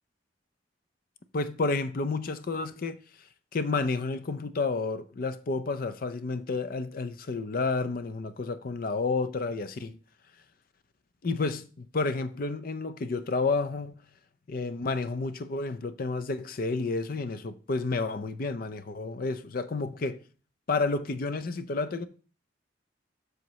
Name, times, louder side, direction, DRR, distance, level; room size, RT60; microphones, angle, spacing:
voice 1, 1.3-3.0 3.5-10.0 11.2-14.0 14.5-20.2 20.7-22.1, left 3 dB, 50° left, 0.5 m, -30 dB
7.5 x 6.3 x 3.1 m
head